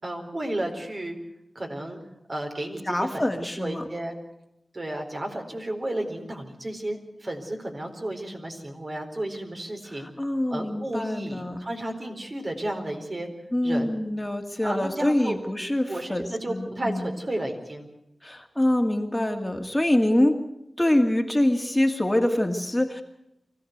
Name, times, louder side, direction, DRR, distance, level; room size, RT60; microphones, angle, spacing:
voice 1, 0.0-1.2 1.5-2.0 2.3-4.2 4.7-10.1 10.5-13.3 13.6-13.9 14.6-15.4 15.9-17.9, right 1 dB, 45° right, 3 dB, 4.4 m, -33 dB
voice 2, 2.8-3.8 9.9-11.6 13.5-17.1 18.2-20.4 20.8-23.0, left 1 dB, 15° left, 4 dB, 2.3 m, -25 dB
24.5 x 15.5 x 8.1 m, 0.83 s
wide cardioid pair, 55°, 0 cm